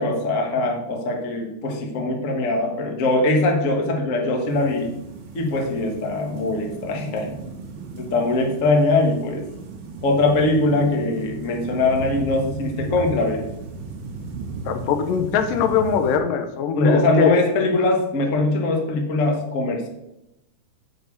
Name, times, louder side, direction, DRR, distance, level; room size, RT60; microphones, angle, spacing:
voice 1, 0.0-4.9 5.3-7.3 8.0-9.4 10.0-13.4 16.7-19.9, left 2 dB, 65° left, 1 dB, 0.7 m, -21 dB
sound 1, 4.5-16.2, right 3 dB, 75° right, 3.2 m, -36 dB
voice 2, 14.7-17.3, left 7 dB, 80° left, 8 dB, 2.4 m, -22 dB
7.6 x 5.2 x 6.4 m, 0.88 s
omnidirectional pair, 3.9 m